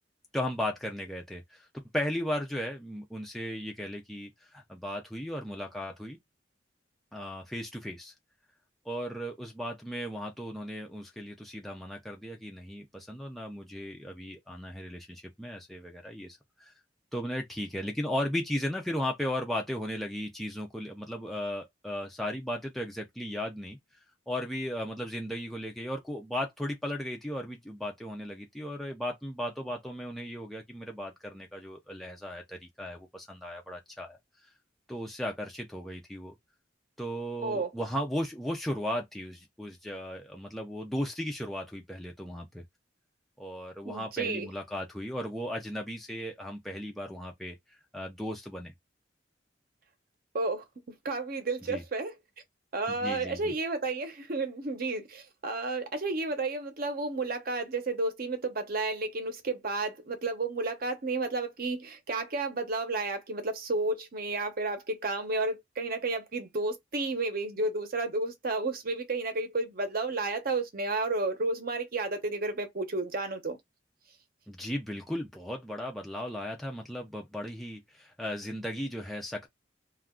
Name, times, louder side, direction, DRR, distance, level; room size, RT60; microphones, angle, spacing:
voice 1, 0.3-1.7 1.9-6.2 7.1-8.1 8.8-16.7 17.1-23.8 24.3-34.2 34.9-36.3 37.0-42.6 43.4-48.7 51.7-51.8 52.9-53.5 74.5-79.5, equal, ahead, 0.4 m, -36 dB
voice 2, 43.8-44.5 50.3-50.6 51.0-52.1 52.7-73.6, right 3 dB, 55° right, 0.7 m, -32 dB
2.3 x 2.2 x 3.5 m
head